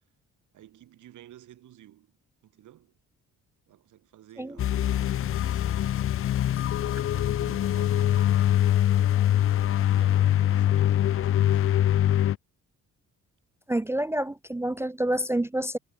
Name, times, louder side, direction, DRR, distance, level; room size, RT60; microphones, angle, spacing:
voice 1, 0.5-2.2 2.4-2.9 3.7-5.7 7.1-9.3 9.9-11.6, right 13 dB, 80° right, 5.5 m, -52 dB
sound 1, 4.6-12.4, left 11 dB, 45° left, 0.5 m, -23 dB
sound 2, 5.0-10.5, right 5 dB, 35° right, 6.1 m, -57 dB
voice 2, 13.7-15.8, right 1 dB, 10° right, 0.5 m, -28 dB
cardioid pair, 90°, 30 cm